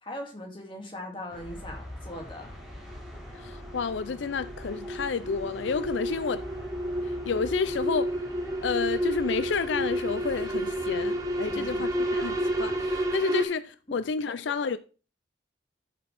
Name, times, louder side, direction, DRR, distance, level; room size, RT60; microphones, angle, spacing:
voice 1, 0.0-2.5 11.5-11.8 13.9-14.0 14.3-14.4, left 1 dB, 30° left, 2.5 m, -40 dB
sound 1, 1.3-13.2, equal, ahead, 3.7 m, -44 dB
sound 2, 2.9-13.4, equal, 20° right, 1.4 m, -31 dB
voice 2, 3.4-6.4 7.3-8.1 8.6-14.8, left 5 dB, 80° left, 0.4 m, -30 dB
13.0 x 6.7 x 3.4 m
head